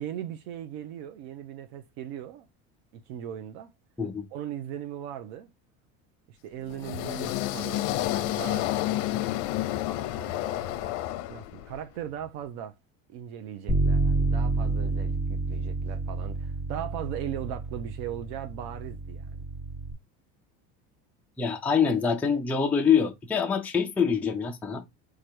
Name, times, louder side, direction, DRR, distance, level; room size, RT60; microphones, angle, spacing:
voice 1, 0.0-2.5 3.1-3.7 4.3-5.5 6.3-8.7 10.1-10.9 11.3-12.7 13.1-19.4, right 10 dB, 85° right, 0.8 m, -38 dB
sound 1, 6.7-11.8, left 15 dB, 80° left, 0.6 m, -30 dB
Bass guitar, 13.7-19.9, right 3 dB, 25° right, 1.4 m, -29 dB
voice 2, 21.4-24.8, left 6 dB, 5° left, 0.4 m, -25 dB
4.8 x 2.4 x 4.4 m
cardioid pair, 165°, 36 cm